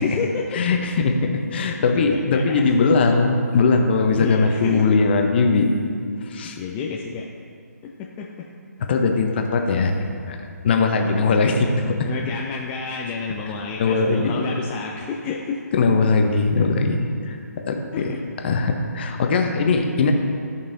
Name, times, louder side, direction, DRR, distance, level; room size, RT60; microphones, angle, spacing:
voice 1, 0.0-0.6 2.0-2.7 4.2-4.8 6.4-7.3 7.8-8.5 11.1-15.7 16.1-16.2 17.9-18.2 19.6-19.9, left 5 dB, 15° left, -2 dB, 0.3 m, -30 dB
voice 2, 0.5-5.7 6.2-6.6 8.8-10.4 10.6-12.0 13.8-14.3 15.7-18.1 18.4-20.1, left 4 dB, 35° left, 4 dB, 0.8 m, -20 dB
13.5 x 5.4 x 2.6 m, 2.3 s
figure-of-eight pair, 145°, 9 cm